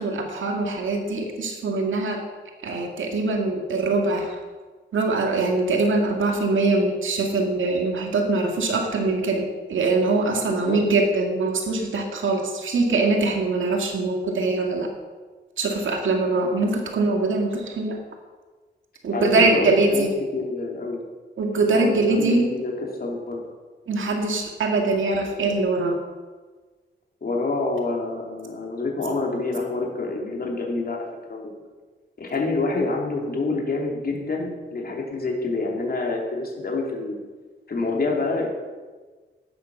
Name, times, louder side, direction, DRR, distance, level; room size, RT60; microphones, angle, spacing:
voice 1, 0.0-2.2 2.6-4.4 4.9-14.9 15.6-18.0 19.0-20.1 21.4-22.5 23.9-26.0, right 3 dB, 90° right, 2 dB, 2.2 m, -23 dB
voice 2, 10.4-10.8 19.1-20.1 20.3-21.0 21.7-23.4 27.2-31.6 32.2-37.2 37.7-38.5, left 3 dB, 50° left, 0 dB, 3.1 m, -27 dB
13.0 x 10.0 x 5.5 m, 1.4 s
wide cardioid pair, 110°, 20 cm